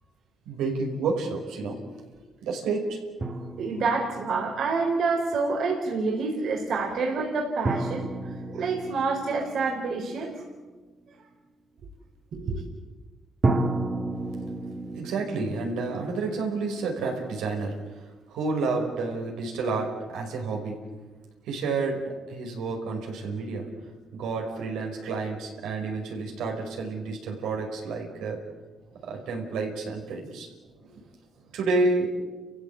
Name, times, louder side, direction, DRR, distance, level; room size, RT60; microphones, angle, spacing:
voice 1, 0.5-1.8 2.4-3.0 14.9-20.8 21.5-23.7 24.1-28.4 29.0-30.5 31.5-32.1, right 3 dB, 90° right, 1 dB, 5.5 m, -30 dB
sound 1, 3.2-5.0 7.7-10.5 13.4-17.3, right 2 dB, 35° right, 2.0 m, -32 dB
voice 2, 3.6-10.3 12.4-12.6, right 4 dB, 70° right, 0 dB, 4.2 m, -28 dB
30.0 x 16.0 x 8.5 m, 1.3 s
cardioid pair, 90°, 0 cm